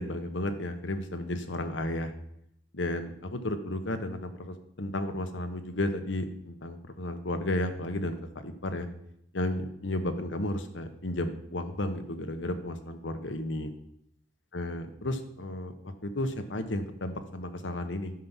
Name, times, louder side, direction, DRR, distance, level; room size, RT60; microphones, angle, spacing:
voice 1, 0.0-2.1 2.7-8.9 9.3-13.7 14.5-18.1, left 1 dB, 80° left, 8 dB, 1.2 m, -33 dB
11.5 x 5.9 x 7.4 m, 0.75 s
head